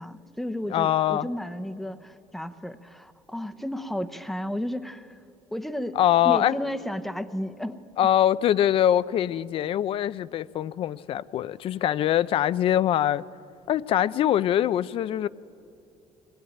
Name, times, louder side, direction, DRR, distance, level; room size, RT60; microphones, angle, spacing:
voice 1, 0.0-5.2 5.5-6.0 6.2-7.8, equal, ahead, 0.8 m, -33 dB
voice 2, 0.7-1.3 6.0-6.6 8.0-13.2 13.7-15.3, left 11 dB, 45° left, 0.5 m, -23 dB
23.0 x 19.5 x 9.9 m
cardioid pair, 150°, 12 cm